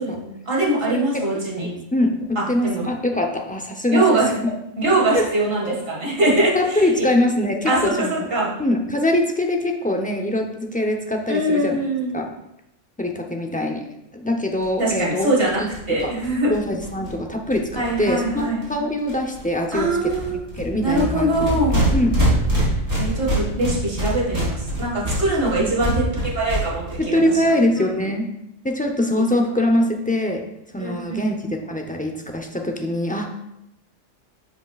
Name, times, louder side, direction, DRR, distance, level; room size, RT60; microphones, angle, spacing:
voice 1, 0.0-1.7 2.6-2.9 3.9-4.3 4.8-7.1 7.7-8.5 11.3-12.1 14.8-15.6 15.9-16.5 17.7-18.7 19.7-20.4 20.8-21.8 23.0-27.8 30.8-31.4, right 2 dB, 50° right, -4 dB, 2.1 m, -22 dB
voice 2, 1.6-4.1 5.1-5.3 6.5-8.2 8.6-11.8 12.1-12.3 13.0-13.8 14.1-15.3 15.6-15.7 16.0-16.1 16.5-20.1 20.6-21.7 21.9-22.2 25.4-25.7 27.0-28.3 28.6-30.4 30.7-33.3, left 1 dB, 10° left, 2 dB, 0.5 m, -23 dB
sound 1, 14.6-14.7 14.9-15.0 15.2-15.3 15.5-18.7 19.1-19.4 19.7-26.9, right 1 dB, 30° right, 3.0 m, -25 dB
10.0 x 5.7 x 2.4 m, 0.85 s
omnidirectional pair, 1.3 m